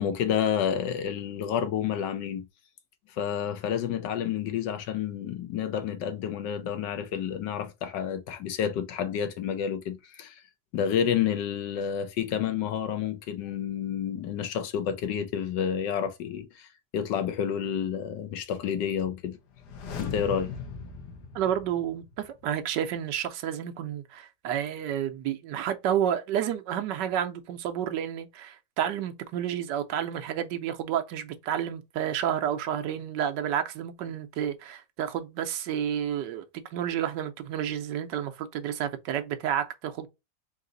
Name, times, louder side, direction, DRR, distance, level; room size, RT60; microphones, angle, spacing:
voice 1, 0.0-2.4 3.2-10.4 10.7-19.4 20.0-20.5, left 8 dB, 90° left, 1.4 m, -29 dB
sound 1, 19.5-22.4 22.7-22.8, left 6 dB, 75° left, 1.4 m, -39 dB
voice 2, 21.3-40.1, right 10 dB, 85° right, 1.3 m, -30 dB
4.0 x 2.6 x 3.8 m
omnidirectional pair, 1.8 m